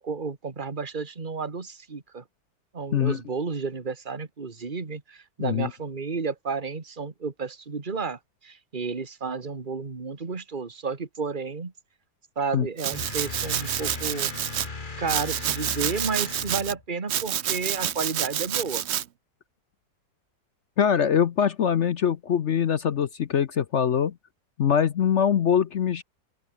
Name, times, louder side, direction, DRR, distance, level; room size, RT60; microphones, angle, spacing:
voice 1, 0.0-2.2 2.7-11.7 12.4-14.3 15.0-18.8, right 4 dB, 30° right, 2.0 m, -32 dB
voice 2, 5.4-5.7 12.5-12.7 20.8-24.1 24.6-26.0, left 8 dB, 55° left, 0.8 m, -23 dB
Domestic sounds home sounds, 12.8-14.7 15.1-16.7 17.1-19.0, right 10 dB, 60° right, 0.7 m, -28 dB
sound 1, 12.9-16.8, left 3 dB, 30° left, 1.9 m, -37 dB
open air
omnidirectional pair, 1.9 m